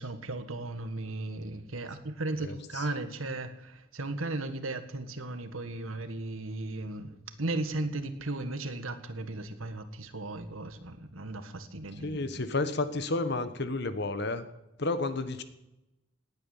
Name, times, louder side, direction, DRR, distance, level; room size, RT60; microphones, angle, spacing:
voice 1, 0.0-12.4, right 2 dB, 85° right, 9 dB, 1.7 m, -36 dB
voice 2, 12.0-14.4 14.8-15.4, left 2 dB, 55° left, 11 dB, 1.3 m, -31 dB
18.0 x 9.6 x 7.4 m, 0.92 s
head